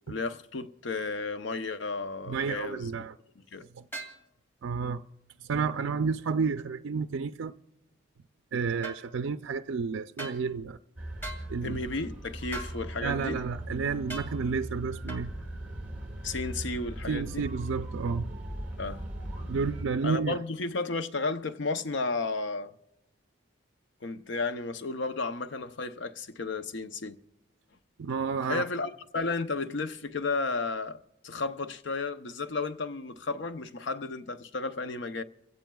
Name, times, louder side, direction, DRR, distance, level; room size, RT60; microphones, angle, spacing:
voice 1, 0.1-2.9 3.5-3.7 11.6-13.4 16.2-17.5 18.8-19.0 20.0-22.7 24.0-27.2 28.5-35.2, left 3 dB, 65° left, 0.6 m, -33 dB
voice 2, 2.3-3.1 3.8-3.9 4.6-5.0 5.5-7.5 8.5-10.8 11.5-11.8 13.0-15.3 17.1-18.3 19.5-20.4 28.0-28.6, right 5 dB, 80° right, 0.4 m, -31 dB
sound 1, 3.9-4.2 8.8-9.0 10.2-10.4 11.2-11.5 12.5-12.8 14.1-14.3 15.1-15.3, right 2 dB, 10° left, 2.3 m, -39 dB
sound 2, 11.0-19.8, right 1 dB, 10° right, 3.8 m, -39 dB
29.5 x 16.5 x 2.3 m
head